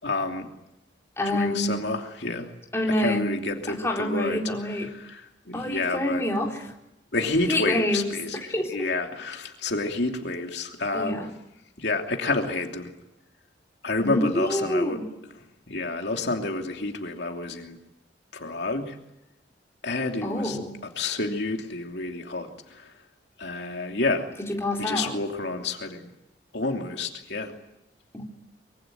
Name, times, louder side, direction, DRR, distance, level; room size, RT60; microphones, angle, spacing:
voice 1, 0.0-0.5 1.2-2.5 2.9-6.2 7.1-8.4 8.7-11.2 11.8-12.9 13.8-15.0 15.7-17.8 18.3-19.0 19.8-20.6 21.0-22.9 23.4-24.3 24.8-26.1 26.5-27.5, left 3 dB, 65° left, 3 dB, 2.9 m, -29 dB
voice 2, 1.2-1.8 2.7-3.3 3.7-4.9 5.5-6.6 7.5-8.2 8.5-8.9 10.9-11.3 14.0-15.1 20.2-20.8 24.4-25.2 28.1-28.2, left 1 dB, 15° left, 0 dB, 4.0 m, -27 dB
24.5 x 24.0 x 9.2 m, 0.87 s
head